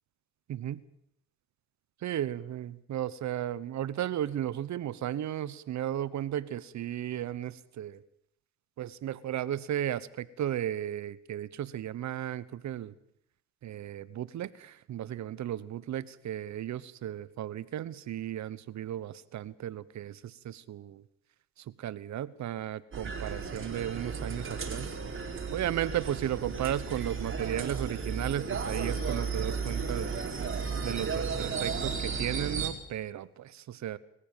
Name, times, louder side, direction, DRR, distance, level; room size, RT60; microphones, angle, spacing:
voice 1, 0.5-0.8 2.0-8.0 8.8-12.9 13.6-21.0 21.6-25.0 25.5-30.2 30.8-34.0, right 11 dB, 65° right, 17 dB, 1.1 m, -35 dB
sound 1, 22.9-32.7, right 5 dB, 40° right, 4.8 m, -34 dB
23.5 x 15.0 x 9.2 m, 0.74 s
cardioid pair, 90°, 30 cm